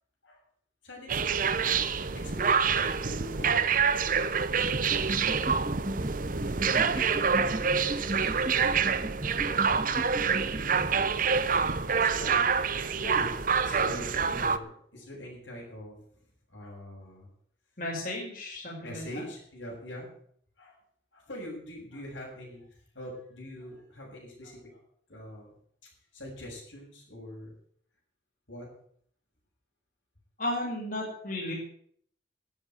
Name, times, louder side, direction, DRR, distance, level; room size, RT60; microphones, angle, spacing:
voice 1, 0.8-1.5 2.0-4.3 6.9-9.1 9.5-10.8 11.3-13.3 13.6-16.0 16.5-17.3 18.8-20.1 20.6-20.8 21.1-24.8 25.1-25.6 26.1-27.6 28.5-28.7, left 1 dB, 80° left, -1 dB, 7.0 m, -44 dB
sound 1, 1.1-14.6, right 6 dB, 45° right, 0.8 m, -27 dB
sound 2, 4.7-11.4, equal, 30° right, 2.3 m, -37 dB
voice 2, 17.8-19.0 30.4-31.5, left 1 dB, 45° left, -3 dB, 5.9 m, -34 dB
12.5 x 9.0 x 9.4 m, 0.62 s
head